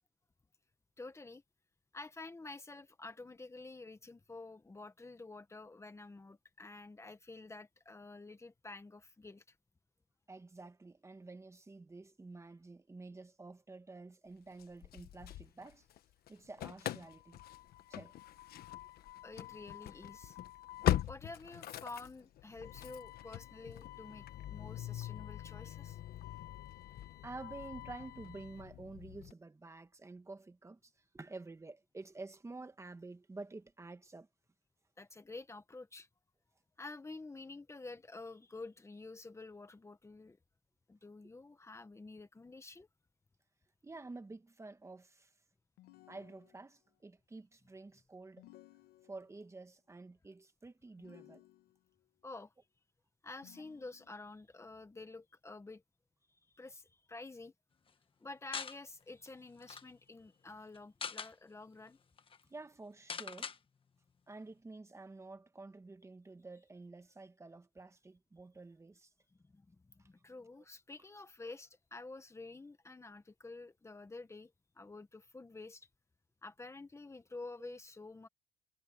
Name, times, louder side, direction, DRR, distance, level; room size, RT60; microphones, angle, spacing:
voice 1, 1.0-1.4 1.9-9.5 19.2-20.4 21.0-26.0 35.0-36.1 36.8-40.4 40.9-42.9 52.2-52.5 53.2-55.8 56.3-57.5 58.2-62.0 69.5-75.9 76.4-78.3, left 3 dB, 15° left, 1.6 m, -50 dB
voice 2, 10.3-15.9 16.3-17.4 17.9-18.1 20.9-21.0 27.2-34.3 43.8-45.3 46.1-48.5 49.0-51.4 62.5-63.5 64.3-69.1 70.0-70.1 70.6-70.7 77.6-77.8, right 3 dB, 15° right, 1.6 m, -50 dB
Engine starting / Slam, 14.6-16.0 16.3-29.3, left 13 dB, 65° left, 1.3 m, -42 dB
sound 1, 45.8-46.9 48.4-49.5 51.0-52.0 53.4-54.4, left 16 dB, 90° left, 1.9 m, -61 dB
sound 2, 58.5-58.8 59.3-59.4 59.6-59.8 60.7-61.3 61.9-62.0 62.2-62.4 63.1-63.6, left 6 dB, 30° left, 1.4 m, -42 dB
cardioid pair, 110°, 17 cm